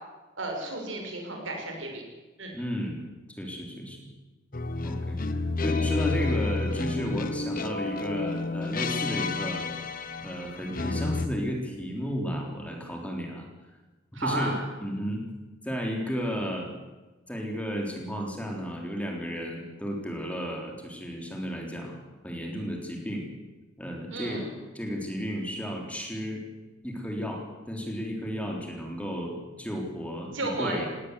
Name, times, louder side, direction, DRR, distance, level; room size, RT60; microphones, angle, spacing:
voice 1, 0.4-2.0 2.4-2.5 14.1-14.6 24.1-24.5 30.3-30.8, right 2 dB, 80° right, 2 dB, 6.2 m, -33 dB
voice 2, 2.5-3.0 3.4-4.1 4.8-9.7 10.2-13.5 14.1-15.3 15.6-16.7 17.3-22.0 22.2-23.3 23.8-24.4 24.7-26.4 26.8-30.9, equal, 5° left, 1 dB, 3.6 m, -33 dB
sound 1, 4.5-11.3, left 3 dB, 50° left, 1.3 m, -30 dB
19.0 x 17.5 x 8.3 m, 1.1 s
head